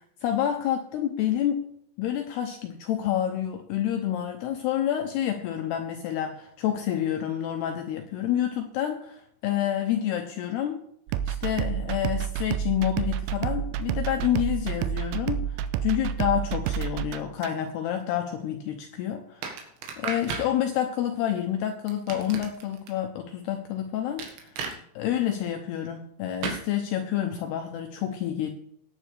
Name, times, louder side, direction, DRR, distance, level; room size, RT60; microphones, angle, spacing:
voice 1, 0.2-1.7 2.0-10.8 11.3-19.5 20.0-24.5 25.0-28.5, left 10 dB, 80° left, 5 dB, 2.4 m, -28 dB
sound 1, 11.1-17.5, right 9 dB, 90° right, 2.4 m, -29 dB
sound 2, 19.4-20.5 21.9-22.9 24.2-24.8 26.4-26.6, right 5 dB, 70° right, 3.8 m, -34 dB
18.0 x 9.9 x 3.4 m, 0.71 s
omnidirectional pair, 5.6 m